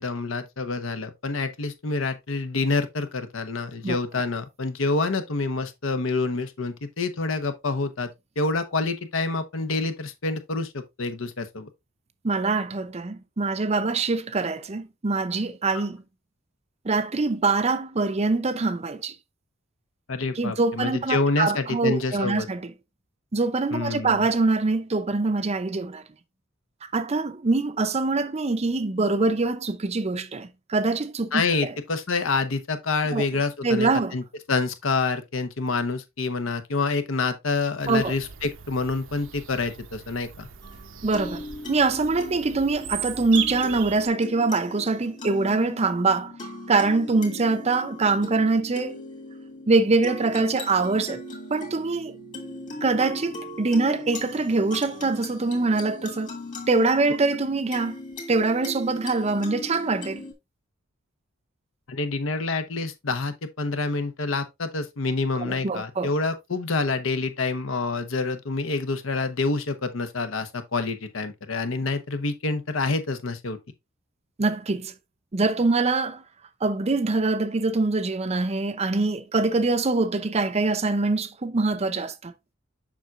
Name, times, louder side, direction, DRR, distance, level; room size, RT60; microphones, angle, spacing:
voice 1, 0.0-11.7 20.1-22.5 23.7-24.3 31.3-40.5 61.9-73.6, left 3 dB, 75° left, 0.9 m, -27 dB
voice 2, 12.2-16.0 16.8-19.1 20.4-22.7 23.3-26.0 26.8-31.7 33.1-33.2 33.6-34.1 37.9-38.1 41.0-46.4 46.7-49.0 49.7-51.2 51.5-52.1 52.8-56.3 56.7-58.0 58.3-60.2 65.4-66.1 74.4-74.9 75.3-76.2 76.6-82.3, right 3 dB, 30° right, 0.6 m, -24 dB
Bird vocalization bird call bird song, 37.8-44.1, right 8 dB, 65° right, 0.7 m, -37 dB
sound 1, 40.6-60.3, left 1 dB, 40° left, 2.3 m, -39 dB
7.2 x 5.9 x 2.4 m
head